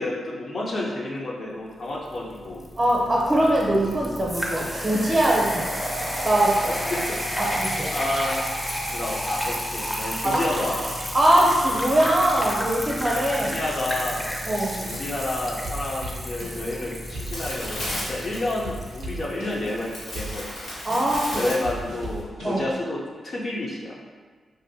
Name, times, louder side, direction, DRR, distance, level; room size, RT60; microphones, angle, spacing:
voice 1, 0.0-2.6 6.6-7.2 7.9-8.6 8.9-10.9 13.4-14.4 14.8-20.4 21.3-23.9, left 2 dB, 55° left, -4 dB, 0.6 m, -30 dB
sound 1, 2.1-20.1, equal, 10° left, 0.6 m, -31 dB
voice 2, 2.8-5.6 6.2-6.6 7.4-7.9 10.2-10.4 11.1-13.5 14.5-14.8 20.8-21.5 22.4-22.6, right 1 dB, 25° right, -3 dB, 0.7 m, -22 dB
sound 2, 14.9-16.8 17.1-18.3 18.6-19.8 20.1-22.7, equal, 90° right, 0.5 m, -38 dB
sound 3, 16.4-22.2, left 1 dB, 75° left, 1.1 m, -36 dB
2.6 x 2.5 x 2.6 m, 1.5 s
supercardioid pair, 50°, 0 cm